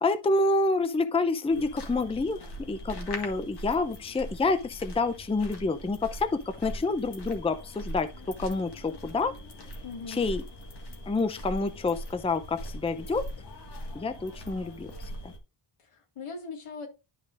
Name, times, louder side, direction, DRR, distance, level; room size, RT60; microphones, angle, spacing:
voice 1, 0.0-9.3 10.1-10.4 11.1-13.3 13.9-15.3, left 3 dB, 10° left, 0.5 m, -28 dB
sound 1, 1.5-15.4, equal, 50° left, 1.8 m, -41 dB
voice 2, 9.8-10.2 15.8-16.9, left 4 dB, 85° left, 2.1 m, -40 dB
11.5 x 5.0 x 2.5 m
wide cardioid pair, 135°, 50 cm